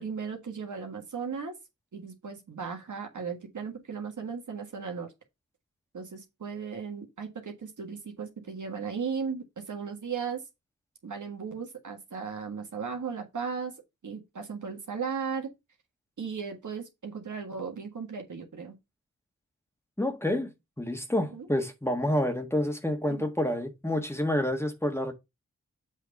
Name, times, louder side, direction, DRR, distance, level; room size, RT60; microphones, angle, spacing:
voice 1, 0.0-1.5 1.9-5.1 5.9-10.4 11.0-13.7 14.0-15.5 16.2-18.8 21.3-21.5 23.1-23.3, right 6 dB, 70° right, 1.6 m, -36 dB
voice 2, 20.0-25.1, left 1 dB, 10° left, 1.5 m, -28 dB
7.3 x 3.5 x 5.2 m
cardioid pair, 45°, 31 cm